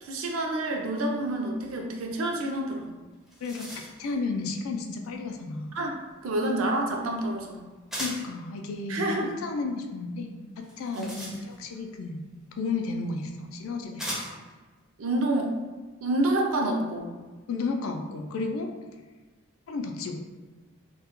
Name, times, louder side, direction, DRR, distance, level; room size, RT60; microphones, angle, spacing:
voice 1, 0.0-2.9 5.7-7.6 8.9-9.3 11.0-11.1 15.0-15.5 16.0-17.1, right 1 dB, 70° right, 1 dB, 0.4 m, -28 dB
sound 1, 3.1-4.1 7.9-8.4 10.6-11.8 12.9-13.0 14.0-14.5, equal, ahead, 0.4 m, -37 dB
voice 2, 3.4-5.7 8.0-12.2 12.5-14.4 17.5-18.7 19.7-20.2, left 3 dB, 75° left, 4 dB, 0.3 m, -33 dB
2.2 x 2.1 x 2.9 m, 1.3 s
head